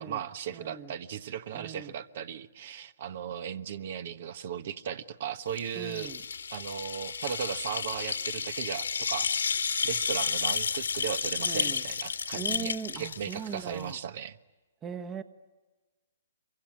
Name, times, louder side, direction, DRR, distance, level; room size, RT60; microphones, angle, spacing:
voice 1, 0.0-6.1 6.5-9.6 9.8-14.4, right 8 dB, 55° right, 1.3 m, -37 dB
voice 2, 0.5-0.9 1.5-1.9 5.7-6.2 11.4-11.8 12.3-14.0 14.8-15.2, right 6 dB, 20° right, 1.3 m, -39 dB
sound 1, 5.5-13.9, left 6 dB, 80° left, 2.0 m, -32 dB
26.5 x 24.0 x 8.8 m
hypercardioid pair, 130°, 0 cm